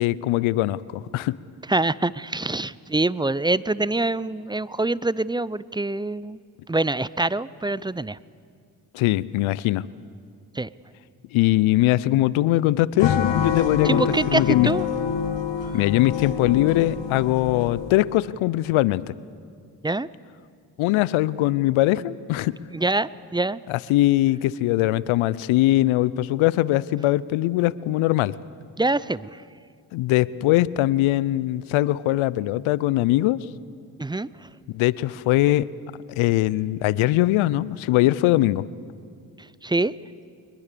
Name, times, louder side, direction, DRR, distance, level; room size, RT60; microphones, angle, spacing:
voice 1, 0.0-1.4 8.9-9.8 11.3-14.7 15.7-19.1 20.8-22.5 23.7-28.4 29.9-33.4 34.7-35.7 36.2-38.6, left 16 dB, 80° left, 20 dB, 0.7 m, -21 dB
voice 2, 1.7-6.4 6.7-8.2 10.5-10.7 13.8-14.9 19.8-20.1 22.7-23.6 28.8-29.4 34.0-34.5 39.6-39.9, right 2 dB, 10° right, 19 dB, 0.5 m, -25 dB
sound 1, 13.0-18.1, left 7 dB, 60° left, 1.8 m, -26 dB
23.5 x 21.5 x 6.8 m, 2.3 s
hypercardioid pair, 45°, 48 cm